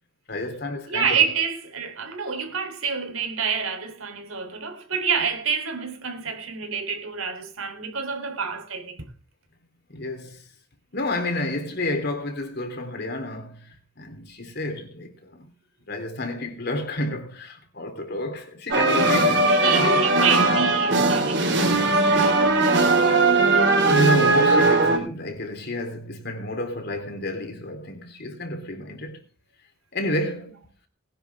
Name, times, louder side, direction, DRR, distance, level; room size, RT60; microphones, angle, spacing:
voice 1, 0.3-1.2 9.9-10.4 10.9-15.5 15.9-20.1 23.9-29.2 29.9-30.7, left 1 dB, 50° left, 3.4 m, -30 dB
voice 2, 0.9-9.1 19.3-22.9, right 6 dB, 90° right, 3.5 m, -28 dB
sound 1, 18.7-25.0, right 2 dB, 55° right, 4.2 m, -19 dB
20.0 x 10.5 x 3.5 m
head